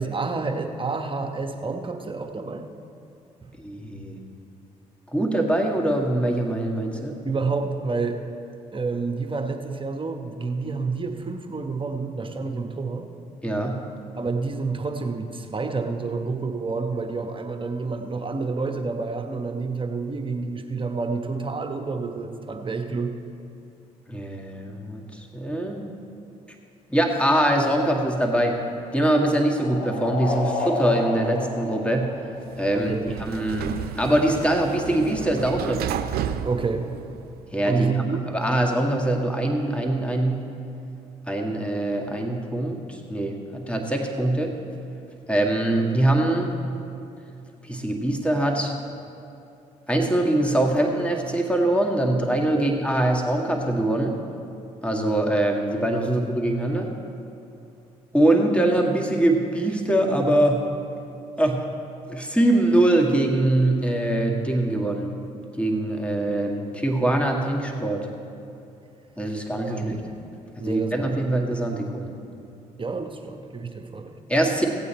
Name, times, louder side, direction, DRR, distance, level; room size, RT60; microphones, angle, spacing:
voice 1, 0.0-2.6 3.4-3.5 7.2-8.2 8.7-13.1 14.2-23.1 32.7-33.1 36.4-36.9 37.6-38.2 52.5-52.7 56.0-56.1 69.6-69.9 70.6-71.2 71.5-71.6 72.8-74.1, right 4 dB, 30° right, 5 dB, 1.2 m, -29 dB
voice 2, 3.6-4.2 5.1-7.2 13.4-13.9 24.1-25.9 26.9-28.6 28.9-32.2 32.6-35.9 37.5-37.9 38.3-40.5 41.3-44.5 45.3-46.5 47.6-48.7 49.9-54.2 54.8-56.9 58.1-60.7 61.4-61.7 62.1-65.2 65.6-68.1 69.2-70.0 70.6-72.2 74.3-74.7, right 1 dB, 5° left, 2 dB, 1.9 m, -23 dB
sound 1, 28.3-32.9, left 2 dB, 60° left, 1.9 m, -31 dB
Sliding door, 32.4-37.6, right 9 dB, 65° right, 0.6 m, -33 dB
16.5 x 8.6 x 4.3 m, 2.7 s
hypercardioid pair, 50°, 17 cm